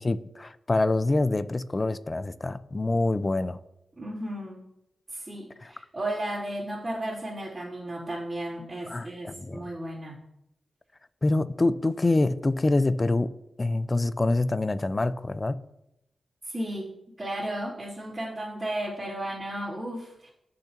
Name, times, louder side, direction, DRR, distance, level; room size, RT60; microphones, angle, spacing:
voice 1, 0.0-3.6 5.6-5.7 8.9-9.7 11.2-13.3 13.6-15.6, left 2 dB, 30° left, 14 dB, 0.6 m, -26 dB
voice 2, 4.0-4.6 5.1-10.2 16.4-16.9 17.2-20.3, right 1 dB, 30° right, -10 dB, 3.5 m, -34 dB
16.5 x 6.7 x 3.0 m, 0.84 s
cardioid pair, 65°, 0 cm